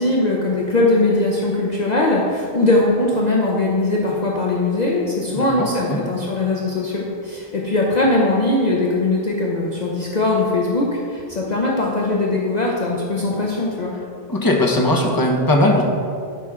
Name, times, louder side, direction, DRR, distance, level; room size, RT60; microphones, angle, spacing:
voice 1, 0.0-13.9, left 2 dB, 45° left, -3 dB, 0.9 m, -20 dB
voice 2, 5.3-6.0 14.3-15.8, left 1 dB, 20° left, 0 dB, 1.0 m, -19 dB
12.0 x 5.4 x 3.7 m, 2.3 s
omnidirectional pair, 1.1 m